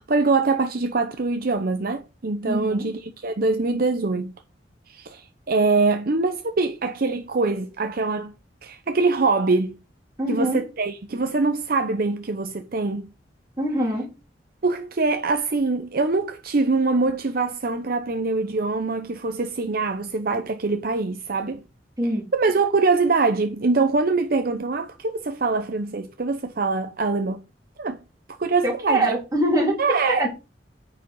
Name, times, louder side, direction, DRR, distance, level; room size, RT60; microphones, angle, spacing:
voice 1, 0.0-4.3 4.9-8.3 8.6-9.8 10.3-13.1 14.6-21.6 22.3-27.4 27.8-28.0 28.4-29.1 29.8-30.3, right 3 dB, 55° right, 0.7 m, -23 dB
voice 2, 2.5-2.9 10.2-10.6 13.6-14.1 22.0-22.3 28.6-30.3, right 1 dB, 20° right, 3.4 m, -24 dB
9.3 x 5.0 x 4.6 m
head